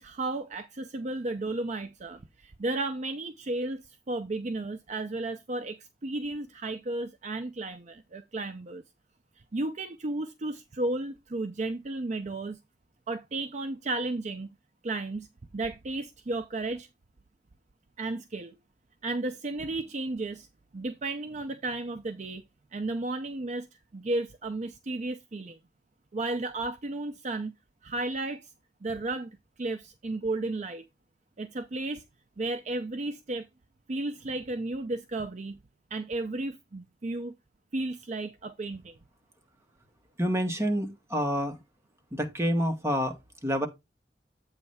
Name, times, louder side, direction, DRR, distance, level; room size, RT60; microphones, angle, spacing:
voice 1, 0.0-8.8 9.5-12.6 13.1-14.5 14.8-15.3 15.5-16.9 18.0-18.6 19.0-20.5 20.7-22.4 22.7-23.7 23.9-25.6 26.1-27.5 27.8-28.5 28.8-29.3 29.6-30.9 31.4-32.0 32.4-33.5 33.9-35.6 35.9-37.3 37.7-39.0, right 2 dB, 45° right, 0.6 m, -33 dB
voice 2, 40.2-41.6 42.1-43.1 43.4-43.7, equal, 15° right, 1.3 m, -28 dB
8.2 x 3.2 x 5.5 m
head